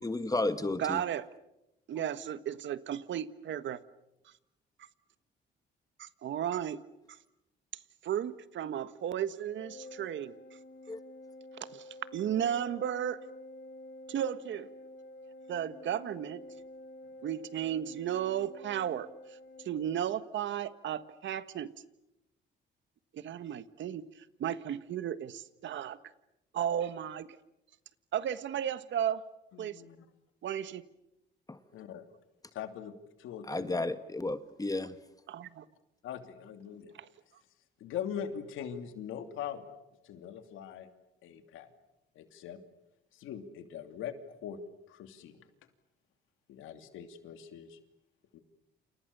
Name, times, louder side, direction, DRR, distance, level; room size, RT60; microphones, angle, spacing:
voice 1, 0.0-1.0 10.9-11.0 31.5-31.6 33.5-35.0, left 2 dB, 20° left, 1.7 m, -32 dB
voice 2, 0.8-1.3 1.9-3.8 6.0-6.8 8.0-10.3 11.6-11.9 12.1-13.2 14.1-14.7 15.5-16.4 17.2-19.4 19.6-21.7 23.1-26.0 26.5-27.3 28.1-29.2 29.6-29.8 30.4-30.8 35.3-35.6 37.0-37.1, right 10 dB, 70° right, 1.5 m, -34 dB
Organ, 9.5-20.3, left 1 dB, 70° left, 3.8 m, -50 dB
voice 3, 29.5-30.1 31.7-32.1 32.5-32.9 33.2-33.9 36.0-36.9 37.8-39.6 40.0-40.9 41.2-41.7 42.1-42.6 43.1-44.6 44.9-45.4 46.5-47.8 48.3-48.4, left 8 dB, 90° left, 2.8 m, -42 dB
29.0 x 28.5 x 6.9 m
cardioid pair, 90°, 20 cm